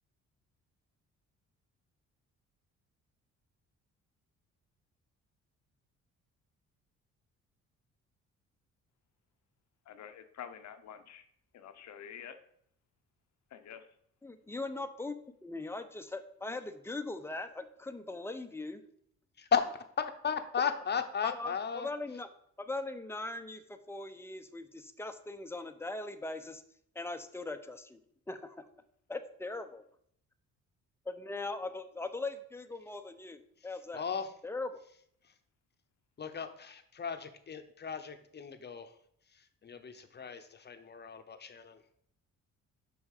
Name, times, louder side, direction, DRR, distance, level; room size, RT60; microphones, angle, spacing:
voice 1, 9.9-11.2 11.5-12.4 13.5-13.9, left 8 dB, 65° left, 9 dB, 0.8 m, -48 dB
voice 2, 14.2-15.2 15.4-18.8 21.2-22.3 22.6-26.6 26.9-28.0 28.3-28.6 29.1-29.8 31.1-34.1 34.4-34.8, left 2 dB, 10° left, 8 dB, 0.7 m, -40 dB
voice 3, 20.0-21.9 33.9-34.3 36.2-38.9 39.6-41.8, left 6 dB, 35° left, 8 dB, 0.9 m, -35 dB
6.2 x 5.4 x 4.9 m, 0.68 s
cardioid pair, 90°, 30 cm